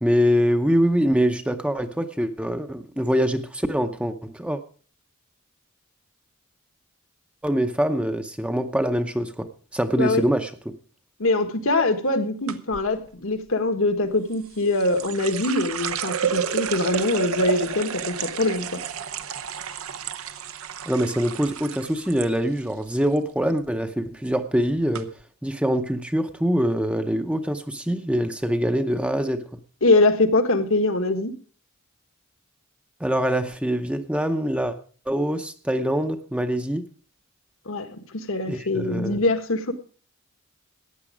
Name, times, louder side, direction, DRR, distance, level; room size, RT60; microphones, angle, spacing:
voice 1, 0.0-4.6 7.4-10.8 20.9-25.1 25.4-29.4 33.0-34.7 35.1-36.9 38.5-39.2, equal, 5° right, 7 dB, 0.7 m, -24 dB
voice 2, 11.2-18.8 29.8-31.3 37.6-37.9 38.3-39.7, left 2 dB, 70° left, 8 dB, 1.5 m, -23 dB
sound 1, 12.5-12.9 14.3-22.3 22.6-23.2 23.5-23.8 24.5-24.6 24.9-25.0, right 7 dB, 80° right, 0.8 m, -31 dB
15.0 x 9.6 x 5.0 m, 0.42 s
head